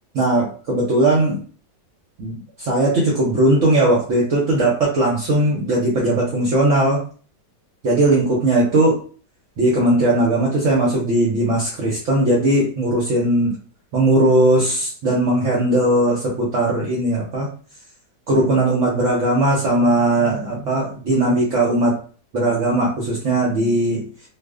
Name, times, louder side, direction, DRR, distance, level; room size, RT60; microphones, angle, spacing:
voice 1, 0.1-1.4 2.2-7.0 7.8-9.0 9.6-13.5 13.9-17.5 18.3-22.0 22.3-24.1, right 1 dB, 60° right, -4 dB, 0.9 m, -18 dB
2.4 x 2.4 x 2.3 m, 0.41 s
omnidirectional pair, 1.8 m